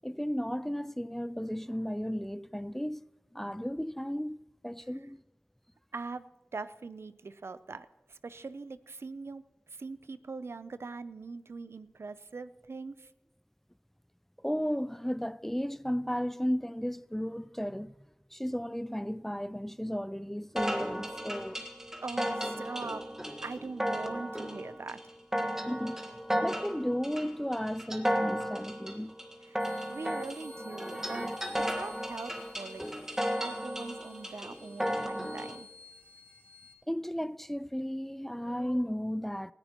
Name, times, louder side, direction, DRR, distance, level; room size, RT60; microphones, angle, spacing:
voice 1, 0.0-3.1 3.3-5.2 14.4-17.9 18.3-21.6 25.7-26.0 26.4-29.1 36.9-39.5, equal, 5° left, 0.4 m, -34 dB
voice 2, 5.9-6.2 6.5-9.4 9.7-13.1 22.0-23.0 23.4-25.1 29.5-32.8 33.4-35.7, right 4 dB, 80° right, 0.5 m, -42 dB
sound 1, 20.6-35.6, equal, 10° right, 1.5 m, -34 dB
sound 2, 29.6-36.7, left 2 dB, 60° left, 3.2 m, -55 dB
19.5 x 14.0 x 2.9 m
wide cardioid pair, 50°, 4 cm